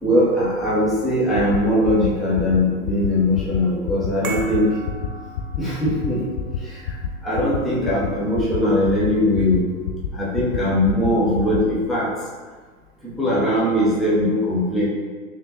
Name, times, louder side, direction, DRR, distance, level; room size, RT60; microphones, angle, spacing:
voice 1, 0.0-4.8 5.6-6.2 6.6-6.9 7.2-9.7 10.1-12.1 13.0-14.8, left 1 dB, ahead, -8 dB, 0.3 m, -20 dB
sound 1, 1.4-1.6 1.9-2.1 2.4-2.6 2.9-3.1 3.4-3.6 3.9-4.1 4.4-4.6 4.9-5.1 5.4-5.6 5.9-6.1 6.4-6.6 6.9-7.1 7.4-7.6 7.9-8.1 8.4-8.6 8.9-9.1 9.4-9.6 9.9-10.1 10.4-10.6 10.9-11.1 11.4-11.6, left 10 dB, 80° left, 0.5 m, -27 dB
sound 2, 4.2-10.7 10.9-11.1, right 3 dB, 90° right, 0.7 m, -40 dB
3.4 x 3.3 x 2.7 m, 1.5 s
hypercardioid pair, 105°, 41 cm